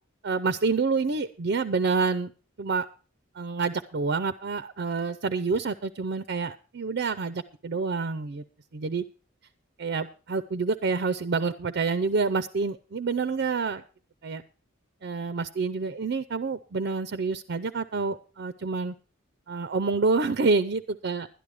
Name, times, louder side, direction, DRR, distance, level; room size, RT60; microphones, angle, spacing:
voice 1, 0.2-2.3 2.6-2.9 3.3-8.4 8.7-9.0 9.8-13.8 14.2-14.4 15.0-18.9 19.5-21.3, right 4 dB, 55° right, 10 dB, 0.5 m, -28 dB
11.5 x 11.0 x 4.8 m, 0.35 s
head